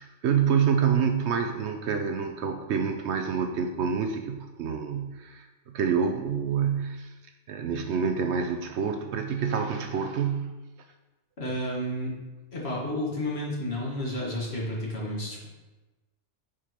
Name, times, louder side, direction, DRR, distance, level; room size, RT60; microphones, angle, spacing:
voice 1, 0.0-7.1 7.5-10.5, right 7 dB, 65° right, 6 dB, 0.8 m, -27 dB
voice 2, 11.4-12.1 12.5-15.5, left 1 dB, 55° left, -4 dB, 1.9 m, -31 dB
8.3 x 5.0 x 3.0 m, 1.1 s
omnidirectional pair, 1.3 m